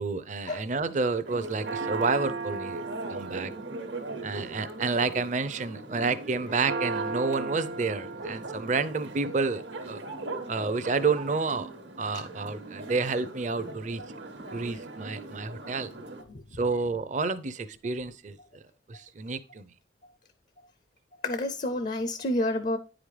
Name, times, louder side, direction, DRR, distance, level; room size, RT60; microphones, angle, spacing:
voice 1, 0.0-2.8 3.1-3.5 4.2-10.0 10.5-11.7 12.0-14.0 14.5-15.9 16.6-18.4 18.9-19.7, right 4 dB, 40° right, 13 dB, 0.5 m, -29 dB
Church bell, 1.2-16.2, right 3 dB, 75° right, 1.1 m, -37 dB
voice 2, 21.2-22.8, left 1 dB, 45° left, 11 dB, 0.5 m, -28 dB
9.5 x 5.0 x 3.2 m, 0.36 s
head